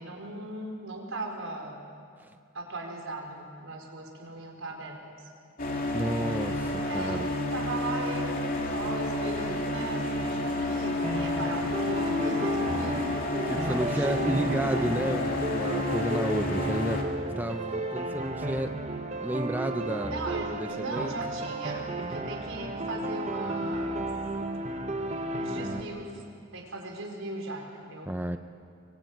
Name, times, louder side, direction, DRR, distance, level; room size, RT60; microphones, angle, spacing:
voice 1, 0.0-1.8 2.5-5.3 6.8-13.0 13.7-14.7 20.1-24.1 25.3-26.2 26.5-28.1, right 2 dB, 75° right, 1 dB, 4.8 m, -38 dB
sound 1, 5.6-17.0, left 2 dB, 45° left, 3.0 m, -30 dB
voice 2, 5.9-7.3 13.5-17.0 17.4-18.8 19.2-20.1 20.6-21.1 28.1-28.4, right 1 dB, 10° right, 6 dB, 0.7 m, -31 dB
sound 2, 11.0-25.8, right 2 dB, 35° right, 1.5 m, -33 dB
24.5 x 24.0 x 9.3 m, 2.3 s
head